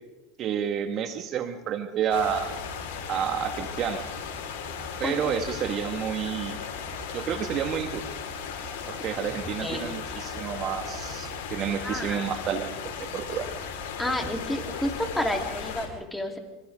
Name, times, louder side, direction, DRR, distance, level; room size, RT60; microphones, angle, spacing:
voice 1, 0.4-2.5 3.1-4.0 5.0-6.6 7.1-8.0 8.9-13.5, right 8 dB, 45° right, 7 dB, 1.9 m, -30 dB
sound 1, 2.1-15.9, left 6 dB, 65° left, 5.0 m, -36 dB
voice 2, 11.8-12.3 14.0-16.4, left 1 dB, 5° left, 2 dB, 4.0 m, -30 dB
26.5 x 25.5 x 3.9 m, 1.1 s
hypercardioid pair, 85°, 0 cm